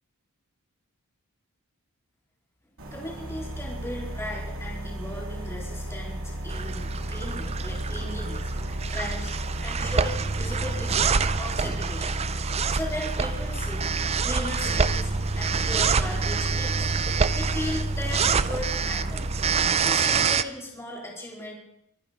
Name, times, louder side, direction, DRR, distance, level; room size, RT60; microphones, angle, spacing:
sound 1, 2.8-19.7, right 1 dB, 65° right, 3.7 m, -33 dB
voice 1, 2.9-9.3 9.6-12.2 12.7-13.9 14.2-16.9 17.3-19.2 19.8-21.5, left 1 dB, 10° left, -3 dB, 4.2 m, -37 dB
sound 2, 6.5-20.4, right 5 dB, 30° right, 0.5 m, -27 dB
23.5 x 9.9 x 5.2 m, 0.81 s
head